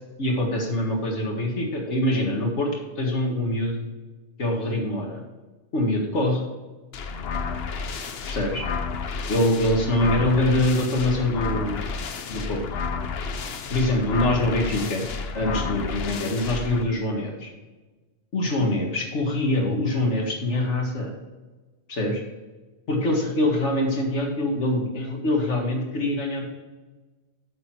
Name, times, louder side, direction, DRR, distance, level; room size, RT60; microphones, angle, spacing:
voice 1, 0.2-3.8 4.4-5.2 5.7-6.4 8.3-8.6 9.3-11.9 12.3-12.6 13.7-15.1 15.3-17.5 18.3-21.1 21.9-22.2 22.9-26.5, left 1 dB, 85° left, 1 dB, 2.1 m, -24 dB
sound 1, 6.9-16.8, left 5 dB, 60° left, 1.0 m, -31 dB
8.7 x 6.8 x 4.6 m, 1.3 s
omnidirectional pair, 1.2 m